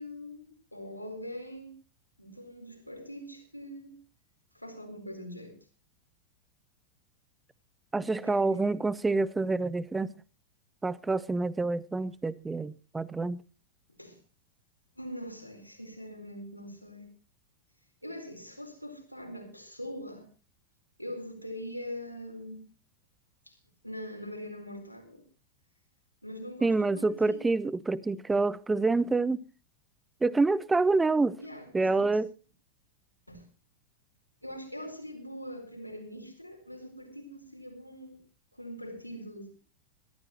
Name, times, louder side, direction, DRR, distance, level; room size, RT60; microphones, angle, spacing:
voice 1, 0.0-1.7 2.2-4.0 4.5-5.6 8.2-8.6 14.0-14.2 15.0-17.1 18.0-20.3 21.0-22.7 23.5-23.6 23.8-25.3 26.2-27.4 27.7-27.8 31.4-32.1 33.3-33.5 34.4-38.2 38.5-39.5, equal, 90° left, 4.2 m, -42 dB
voice 2, 7.9-10.1 10.8-13.4 26.6-29.4 30.2-31.4 31.7-32.3, right 3 dB, 10° right, 0.7 m, -27 dB
22.0 x 14.0 x 3.0 m
figure-of-eight pair, 90°, 0 cm